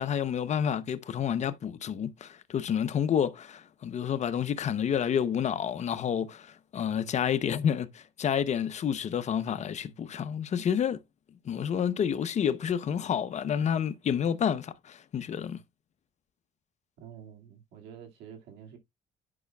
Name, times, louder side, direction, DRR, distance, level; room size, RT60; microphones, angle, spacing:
voice 1, 0.0-11.0 11.4-15.6, left 8 dB, 45° left, 0.7 m, -29 dB
voice 2, 17.0-18.8, right 8 dB, 90° right, 2.1 m, -48 dB
10.5 x 5.6 x 2.2 m
cardioid pair, 110°, 17 cm